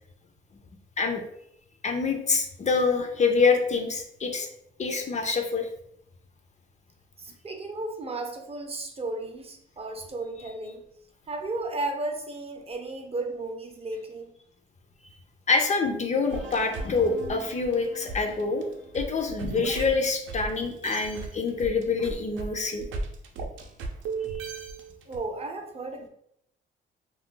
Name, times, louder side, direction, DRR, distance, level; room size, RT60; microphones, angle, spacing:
voice 1, 1.8-4.5 4.8-5.7 15.5-18.7 18.9-22.9, left 4 dB, 35° left, 4 dB, 0.5 m, -26 dB
voice 2, 7.2-10.8 11.3-14.3 25.1-26.1, right 2 dB, 30° right, 3 dB, 0.5 m, -34 dB
sound 1, 16.3-20.5 20.8-25.2, right 4 dB, 75° right, 0.5 m, -37 dB
2.3 x 2.2 x 3.7 m, 0.74 s
cardioid pair, 90°, 20 cm